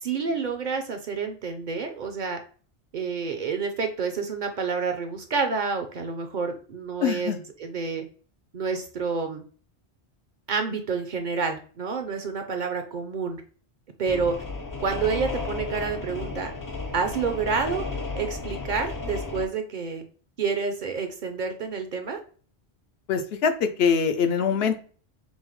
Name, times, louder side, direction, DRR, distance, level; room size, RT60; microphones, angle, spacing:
voice 1, 0.0-2.4 2.9-7.3 7.6-8.0 8.5-9.4 10.5-13.4 14.0-14.4 14.8-16.5 16.9-17.9 18.1-20.0 20.4-22.2, right 5 dB, 55° right, 6 dB, 0.6 m, -28 dB
voice 2, 7.0-7.4 23.1-24.8, left 6 dB, 75° left, 8 dB, 0.8 m, -23 dB
sound 1, 14.1-19.5, left 3 dB, 35° left, 0.3 m, -33 dB
5.4 x 2.1 x 3.1 m, 0.41 s
omnidirectional pair, 1.1 m